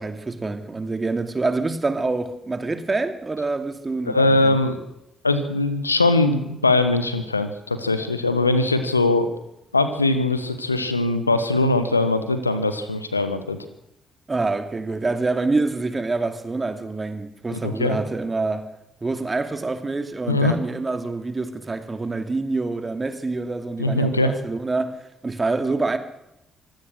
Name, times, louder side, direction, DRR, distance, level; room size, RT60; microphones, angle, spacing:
voice 1, 0.0-4.6 14.3-18.7 19.0-26.0, right 3 dB, 30° right, 2.8 m, -26 dB
voice 2, 4.1-4.8 5.2-9.3 9.7-13.6 17.5-18.0 20.3-20.6 23.8-24.4, left 2 dB, 90° left, 1.3 m, -21 dB
25.0 x 16.0 x 6.5 m
figure-of-eight pair, 40°, 0 cm